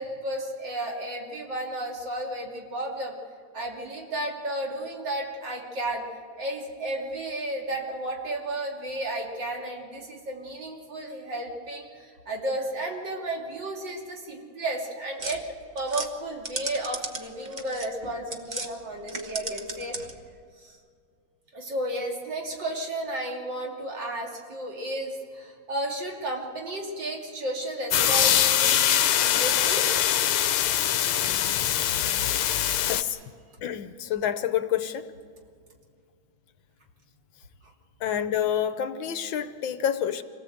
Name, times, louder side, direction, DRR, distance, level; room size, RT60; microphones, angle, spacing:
voice 1, 0.0-3.1 3.5-6.0 6.4-15.4 15.7-20.0 20.6-20.8 21.5-29.9, right 1 dB, 55° right, -1 dB, 3.4 m, -33 dB
sound 1, 15.2-18.7 19.0-20.3, right 2 dB, 25° right, 1.1 m, -36 dB
sound 2, 27.9-33.0, left 11 dB, 85° left, 1.7 m, -23 dB
voice 2, 33.6-35.1 38.0-40.2, left 9 dB, 70° left, 11 dB, 1.5 m, -28 dB
26.0 x 18.0 x 7.9 m, 2.2 s
omnidirectional pair, 2.3 m